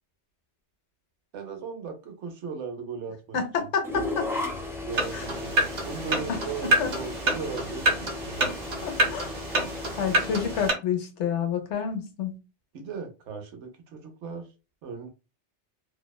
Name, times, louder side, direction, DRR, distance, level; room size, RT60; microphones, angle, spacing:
voice 1, 1.3-3.7 4.8-8.5 12.7-14.5 14.8-15.1, right 5 dB, 80° right, 1.0 m, -38 dB
voice 2, 3.3-4.3 5.1-5.3 6.3-6.4 6.8-6.9 8.8-9.3 10.0-12.3, left 6 dB, 80° left, 1.0 m, -29 dB
sound 1, 3.8-10.7, left 2 dB, 5° right, 0.4 m, -36 dB
sound 2, 4.9-10.7, right 1 dB, 50° right, 0.6 m, -28 dB
2.7 x 2.0 x 2.2 m
omnidirectional pair, 1.2 m